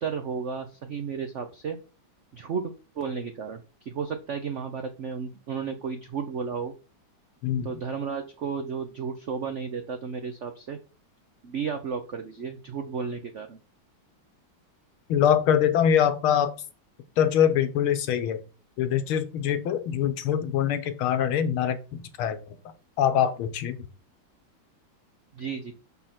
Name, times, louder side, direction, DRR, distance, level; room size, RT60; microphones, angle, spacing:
voice 1, 0.0-1.8 2.3-6.7 7.6-10.8 11.4-13.6 25.3-25.7, right 6 dB, 80° right, 6 dB, 0.6 m, -33 dB
voice 2, 15.1-16.5 17.2-18.4 18.8-22.6 23.0-23.8, left 9 dB, 85° left, 10 dB, 1.7 m, -24 dB
5.9 x 5.5 x 4.3 m, 0.34 s
omnidirectional pair, 2.3 m